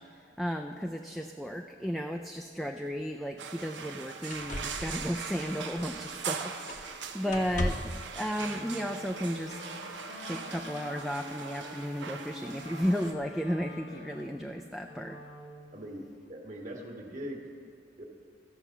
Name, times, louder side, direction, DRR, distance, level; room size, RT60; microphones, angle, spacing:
voice 1, 0.0-9.6 10.3-15.2, equal, ahead, 2 dB, 0.3 m, -34 dB
sound 1, 3.0-3.1 3.8-3.9 4.3-6.3 6.7-7.0 7.3-8.1 9.2-9.3, left 1 dB, 45° left, 0.8 m, -37 dB
sound 2, 3.4-13.1, right 6 dB, 85° right, 0.8 m, -41 dB
Wind instrument woodwind instrument, 8.3-15.7, left 2 dB, 80° left, 1.8 m, -47 dB
voice 2, 15.7-17.5 18.0-18.1, equal, 45° right, 0 dB, 1.6 m, -41 dB
14.5 x 5.6 x 7.2 m, 2.4 s
head